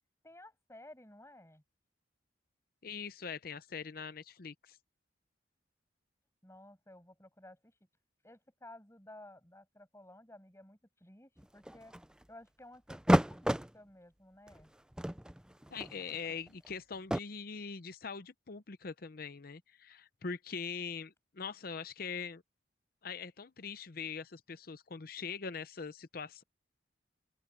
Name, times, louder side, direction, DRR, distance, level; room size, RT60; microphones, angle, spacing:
voice 1, 0.2-1.6 6.4-7.8 8.2-11.9 12.3-14.7, left 1 dB, 15° left, 7.6 m, -55 dB
voice 2, 2.8-4.8 15.7-22.4 23.0-26.4, left 5 dB, 50° left, 0.7 m, -42 dB
sound 1, 11.4-12.2 12.9-13.7 14.5-14.6 14.9-17.2, equal, 5° right, 0.4 m, -31 dB
open air
head